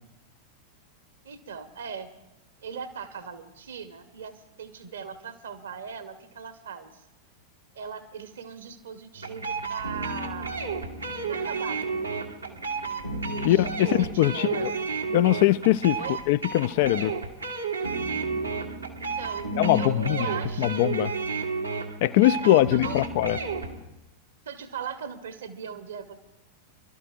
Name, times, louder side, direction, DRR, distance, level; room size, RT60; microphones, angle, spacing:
voice 1, 1.2-2.1 2.6-7.0 7.7-10.6 11.3-13.7 14.0-14.7 15.9-16.2 19.2-20.9 22.4-23.0 24.4-26.2, right 7 dB, 65° right, 1.3 m, -39 dB
sound 1, 9.1-23.8, right 4 dB, 80° right, 1.4 m, -32 dB
voice 2, 13.4-14.7 15.1-16.0 16.3-17.1 19.6-20.3 20.6-21.1 22.0-23.4, left 15 dB, 50° left, 0.4 m, -22 dB
28.5 x 12.5 x 2.6 m
figure-of-eight pair, 90°, 0 cm